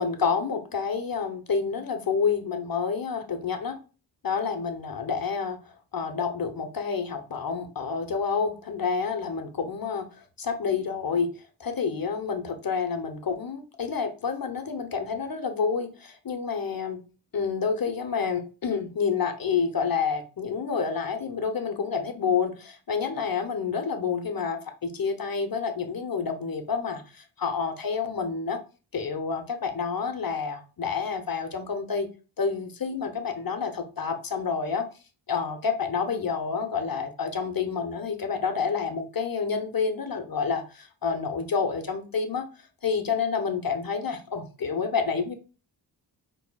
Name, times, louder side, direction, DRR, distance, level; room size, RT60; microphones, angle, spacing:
voice 1, 0.0-3.8 4.2-5.6 5.9-10.1 10.4-11.3 11.6-17.0 17.3-28.6 28.9-32.1 32.4-34.9 35.3-42.4 42.8-45.3, left 5 dB, 50° left, 6 dB, 0.9 m, -28 dB
5.9 x 3.1 x 2.3 m, 0.33 s
cardioid pair, 55°, 45 cm